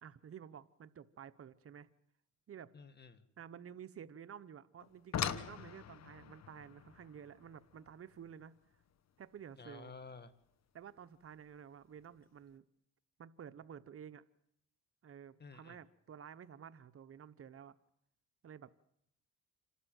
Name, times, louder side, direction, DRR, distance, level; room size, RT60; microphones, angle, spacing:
voice 1, 0.0-1.9 2.5-2.7 3.4-8.5 9.2-9.9 10.7-12.6 13.2-14.2 15.0-17.8 18.4-18.7, right 8 dB, 50° right, 14 dB, 1.0 m, -52 dB
voice 2, 2.7-3.2 9.6-10.3 15.4-15.8, left 4 dB, 35° left, 12 dB, 2.0 m, -52 dB
sound 1, 4.8-9.9 11.2-11.3 12.0-12.2 12.5-12.6, left 9 dB, 60° left, 1.3 m, -43 dB
28.0 x 12.5 x 9.3 m, 0.76 s
cardioid pair, 90°, 30 cm